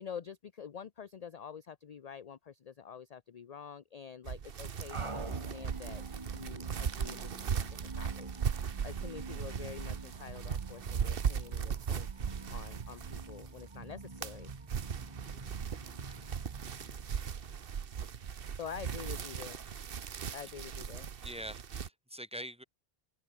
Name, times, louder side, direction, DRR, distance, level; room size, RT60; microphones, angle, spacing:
voice 1, 0.0-6.0 6.3-12.1 12.5-14.5 18.6-19.6 20.3-21.1, left 7 dB, 45° left, 0.7 m, -47 dB
sound 1, 4.2-13.6 14.0-21.9, right 7 dB, 65° right, 1.2 m, -38 dB
sound 2, 4.9-17.8, right 3 dB, 30° right, 1.6 m, -47 dB
voice 2, 21.2-22.6, equal, 5° right, 2.7 m, -44 dB
open air
omnidirectional pair, 1.0 m